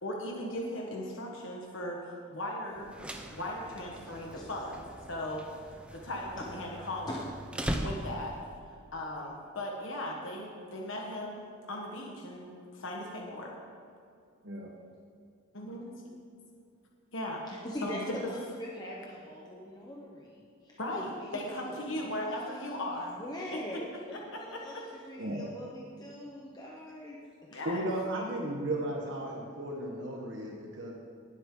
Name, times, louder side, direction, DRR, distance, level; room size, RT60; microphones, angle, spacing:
voice 1, 0.0-2.9 3.3-4.8 5.1-5.4 5.9-7.2 7.8-8.3 8.9-13.5 15.5-15.9 17.1-17.4 17.8-18.0 20.8-23.1 24.3-24.8 27.5-27.8, left 1 dB, 60° left, -1 dB, 1.4 m, -38 dB
sound 1, 2.8-8.5, equal, 5° right, 0.6 m, -40 dB
voice 2, 4.0-4.5 6.7-7.2 17.5-22.2 23.0-27.2 27.5-27.6, equal, 20° left, -3 dB, 1.0 m, -43 dB
voice 3, 27.6-30.9, right 1 dB, 55° right, -1 dB, 1.3 m, -35 dB
19.0 x 8.2 x 3.9 m, 2.4 s
head